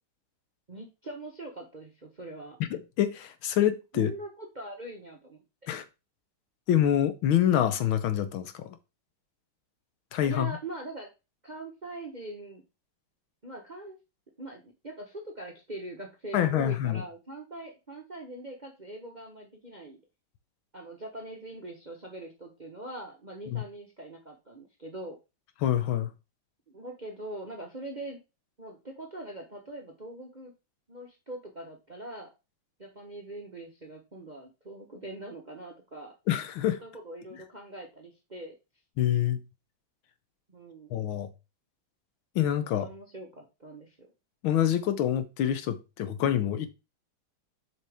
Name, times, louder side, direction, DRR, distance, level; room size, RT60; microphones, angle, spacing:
voice 1, 0.7-2.6 3.9-5.4 10.2-11.1 11.4-12.6 13.4-13.9 14.4-20.0 20.7-25.2 26.7-28.2 28.6-30.5 30.9-32.3 32.8-36.1 36.8-38.6 40.5-41.0 42.6-44.1, right 1 dB, 30° right, 0.8 m, -42 dB
voice 2, 2.6-4.1 5.7-5.9 6.7-8.7 10.1-10.6 16.3-17.0 23.5-23.6 25.6-26.1 36.3-36.8 39.0-39.4 40.9-41.3 42.4-42.9 44.4-46.7, left 10 dB, 75° left, 1.6 m, -26 dB
7.4 x 5.7 x 3.5 m
omnidirectional pair, 2.3 m